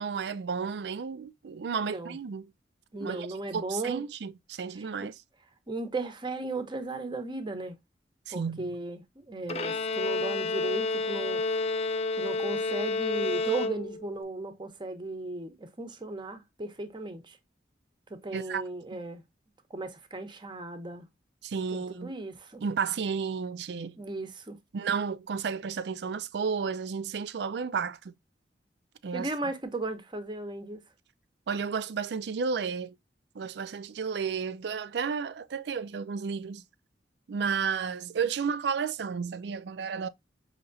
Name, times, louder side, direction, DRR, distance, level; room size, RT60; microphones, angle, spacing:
voice 1, 0.0-2.5 3.0-3.3 3.5-5.2 8.3-8.8 18.3-18.6 18.9-19.0 21.4-22.1 22.6-24.0 24.7-28.1 29.0-29.3 31.5-33.0 33.4-36.6 37.3-40.1, right 6 dB, 70° right, 0.4 m, -32 dB
voice 2, 1.8-2.2 2.9-4.0 4.7-4.9 5.7-7.8 8.3-11.4 12.2-17.4 18.1-19.2 19.7-21.1 21.7-22.6 24.0-24.6 29.1-30.8, right 2 dB, 25° right, 0.7 m, -36 dB
Bowed string instrument, 9.5-14.2, left 3 dB, 35° left, 0.4 m, -30 dB
5.4 x 2.9 x 2.6 m
head